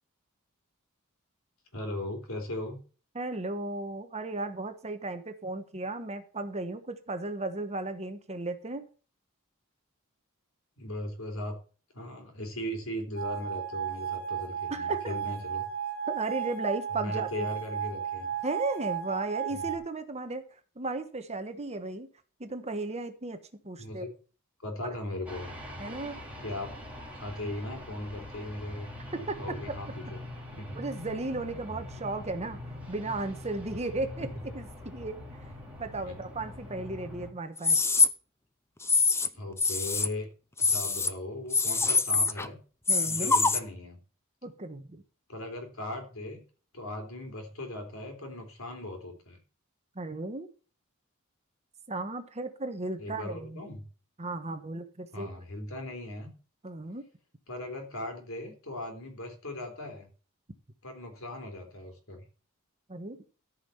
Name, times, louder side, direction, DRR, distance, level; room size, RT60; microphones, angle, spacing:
voice 1, 1.7-2.8 10.8-11.6 11.9-15.7 17.0-18.3 19.5-19.7 23.8-24.1 24.6-25.6 26.4-26.7 27.1-30.2 30.6-30.8 34.2-34.3 36.0-36.2 39.3-40.3 40.6-42.6 43.1-44.0 45.3-46.4 46.7-49.4 53.0-53.8 55.1-56.3 57.5-60.1 60.8-62.3, left 1 dB, 70° left, 4 dB, 3.8 m, -38 dB
voice 2, 3.1-8.9 14.7-15.1 16.1-17.3 18.4-22.1 22.4-23.4 23.6-24.0 25.8-26.2 29.3-29.8 30.7-32.6 32.9-34.3 34.5-35.4 35.8-37.8 42.9-43.3 44.4-45.0 49.9-50.5 51.9-53.6 54.2-55.3 56.6-57.0 62.9-63.2, right 2 dB, 30° right, 8 dB, 1.3 m, -35 dB
sound 1, 13.1-19.8, right 9 dB, 50° right, 2.4 m, -34 dB
sound 2, 25.3-37.3, left 1 dB, 5° right, 2.8 m, -43 dB
sound 3, 37.6-38.1 38.8-39.3 39.6-40.1 40.6-41.1 41.5-42.5 42.9-43.6, left 4 dB, 10° left, 0.6 m, -24 dB
14.0 x 5.7 x 6.9 m, 0.38 s
head